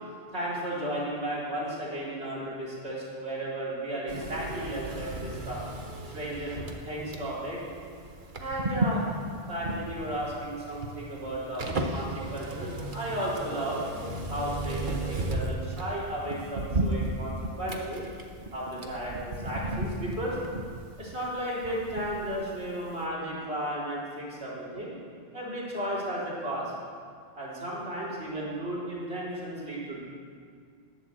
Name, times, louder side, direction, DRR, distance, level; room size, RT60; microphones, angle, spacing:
voice 1, 0.3-5.6 6.1-6.5 6.9-7.6 8.4-9.1 9.3-11.6 11.9-13.8 14.3-18.0 18.5-20.4 21.0-24.9 25.3-26.7 27.3-30.0, right 1 dB, 80° right, -7 dB, 4.1 m, -34 dB
sound 1, 4.1-22.7 22.9-23.0, right 2 dB, 50° right, 1.3 m, -34 dB
19.5 x 7.3 x 7.8 m, 2.2 s
omnidirectional pair, 1.1 m